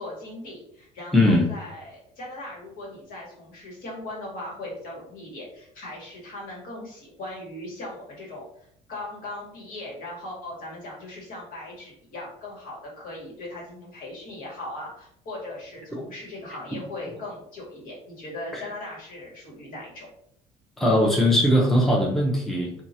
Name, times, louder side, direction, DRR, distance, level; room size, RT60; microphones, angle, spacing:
voice 1, 0.0-8.5 8.9-20.1, left 1 dB, 60° left, -3 dB, 1.4 m, -39 dB
voice 2, 1.1-1.5 15.9-16.0 18.5-18.7 20.8-22.7, left 1 dB, ahead, -2 dB, 0.7 m, -20 dB
2.9 x 2.3 x 2.7 m, 0.70 s
supercardioid pair, 75°, 17 cm